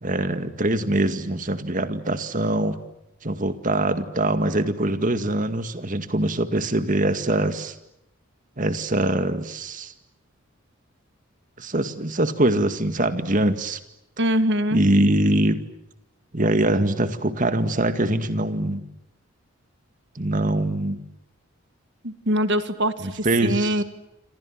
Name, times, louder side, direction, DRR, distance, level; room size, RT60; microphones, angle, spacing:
voice 1, 0.0-2.8 3.2-7.8 8.6-9.9 11.6-13.8 14.7-15.6 16.3-18.8 20.2-21.0 23.0-23.7, right 1 dB, 40° right, 10 dB, 2.0 m, -23 dB
voice 2, 14.2-15.2 22.0-23.8, equal, 55° right, 11 dB, 2.0 m, -24 dB
28.0 x 27.0 x 7.5 m, 0.83 s
head